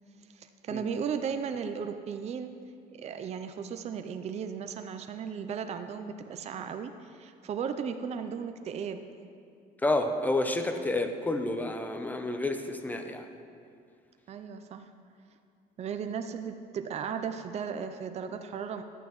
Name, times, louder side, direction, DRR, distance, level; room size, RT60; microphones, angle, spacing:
voice 1, 0.3-2.5 3.0-9.1 14.3-14.9 15.8-18.8, right 7 dB, 40° right, 8 dB, 0.5 m, -36 dB
voice 2, 9.8-13.3, left 2 dB, 10° left, 6 dB, 0.7 m, -29 dB
11.5 x 9.0 x 3.0 m, 2.4 s
cardioid pair, 110°, 17 cm